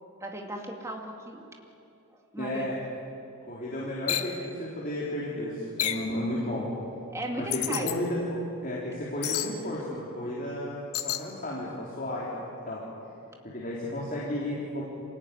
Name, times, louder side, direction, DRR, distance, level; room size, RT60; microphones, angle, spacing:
voice 1, 0.2-1.5 2.3-2.7 7.1-7.9, right 1 dB, 15° right, 1 dB, 2.3 m, -36 dB
voice 2, 2.4-2.8 3.5-6.7 7.4-8.2 8.6-12.8 13.4-14.8, left 1 dB, 40° left, -6 dB, 4.0 m, -33 dB
sound 1, 4.1-4.3 5.8-6.1 7.5-8.0 9.2-9.5 10.9-11.2, left 11 dB, 85° left, 1.4 m, -29 dB
27.0 x 18.0 x 9.7 m, 2.7 s
head